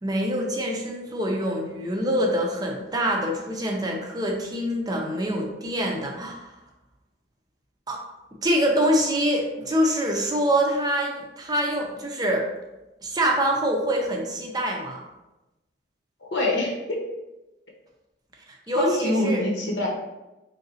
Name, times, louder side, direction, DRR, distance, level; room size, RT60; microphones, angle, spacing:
voice 1, 0.0-6.5 7.9-8.0 8.4-12.4 13.0-15.0 18.7-19.4, equal, 20° right, 0 dB, 0.4 m, -25 dB
voice 2, 16.2-17.1 18.7-19.9, left 1 dB, 70° left, -1 dB, 0.9 m, -25 dB
3.8 x 3.2 x 2.6 m, 1.0 s
head